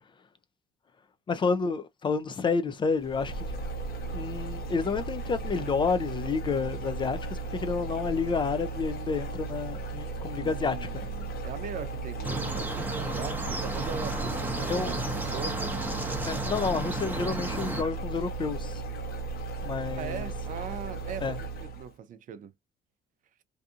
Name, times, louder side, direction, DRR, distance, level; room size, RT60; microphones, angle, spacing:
voice 1, 1.3-3.4 4.1-11.1 14.7-14.9 16.3-18.8 19.6-20.3 21.2-21.4, left 5 dB, 30° left, 0.4 m, -30 dB
sound 1, 3.0-21.9, right 3 dB, 60° left, 0.9 m, -36 dB
voice 2, 10.4-15.6 19.9-22.5, right 7 dB, 50° right, 0.5 m, -40 dB
sound 2, 12.2-17.8, right 2 dB, 10° right, 0.8 m, -33 dB
2.7 x 2.4 x 2.4 m
cardioid pair, 110°, 17 cm